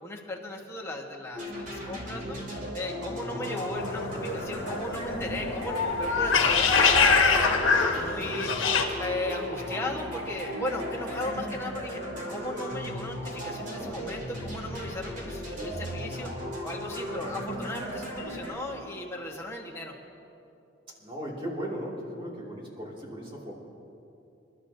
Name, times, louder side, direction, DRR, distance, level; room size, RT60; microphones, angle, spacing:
voice 1, 0.0-8.5 9.0-12.0 12.3-16.3 16.6-19.9, left 1 dB, 15° left, -1 dB, 1.4 m, -36 dB
sound 1, 1.3-18.5, equal, 45° right, 3.0 m, -36 dB
sound 2, 3.8-8.8, left 5 dB, 85° left, 1.2 m, -24 dB
voice 2, 21.0-23.5, equal, 25° right, -3 dB, 2.5 m, -37 dB
28.5 x 12.0 x 2.8 m, 2.8 s
head